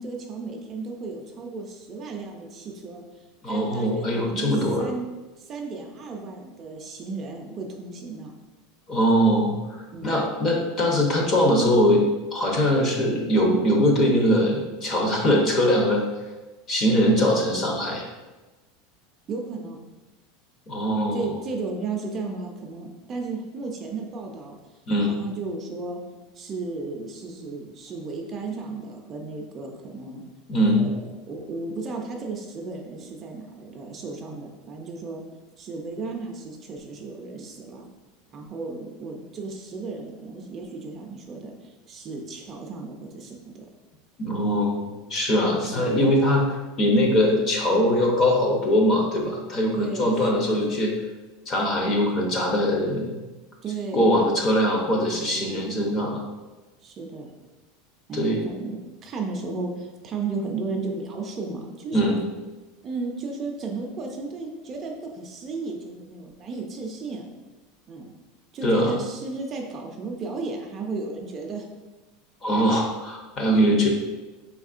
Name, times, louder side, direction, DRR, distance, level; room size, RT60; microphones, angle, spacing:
voice 1, 0.0-3.0 3.5-5.1 5.4-8.4 9.9-10.2 19.3-19.8 21.1-24.6 25.0-26.0 26.3-30.2 30.7-31.0 31.3-35.2 35.6-37.9 38.3-43.7 45.7-46.0 49.7-50.8 53.6-54.3 55.2-55.6 56.8-57.3 58.1-58.8 59.0-62.1 62.8-67.3 67.9-68.1 68.5-71.7 73.5-73.8, right 3 dB, 20° right, 2 dB, 0.4 m, -34 dB
voice 2, 3.4-4.9 8.9-16.0 16.7-18.1 20.7-21.3 24.9-25.2 30.5-30.9 44.2-46.4 46.8-50.9 51.5-53.2 53.9-56.2 58.1-58.4 61.9-62.2 68.6-68.9 72.4-73.9, equal, 25° left, 0 dB, 0.6 m, -22 dB
4.8 x 3.5 x 2.4 m, 1.2 s
supercardioid pair, 175°, 0 cm